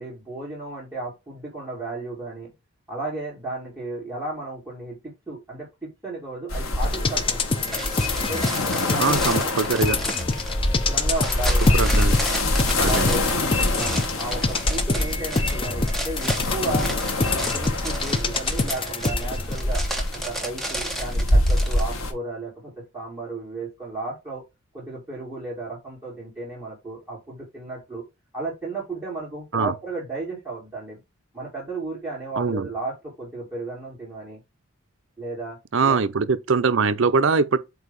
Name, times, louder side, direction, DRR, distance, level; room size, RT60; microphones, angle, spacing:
voice 1, 0.0-2.5 2.9-7.8 8.2-9.5 10.7-11.9 12.8-13.3 13.7-16.9 17.2-19.8 20.1-24.4 24.7-28.0 28.3-31.0 31.3-34.4 35.2-35.6 35.8-36.0, right 2 dB, 15° right, 2.1 m, -34 dB
sound 1, 6.5-22.1, left 1 dB, 75° left, 1.2 m, -25 dB
sound 2, 6.8-19.6 20.0-20.1, left 3 dB, 25° left, 0.5 m, -27 dB
sound 3, 7.7-22.0, right 1 dB, ahead, 1.0 m, -33 dB
voice 2, 9.0-10.0 11.6-12.2 12.8-13.2 29.5-29.7 32.4-32.7 35.7-37.6, right 4 dB, 65° right, 0.6 m, -22 dB
8.0 x 2.7 x 5.2 m
head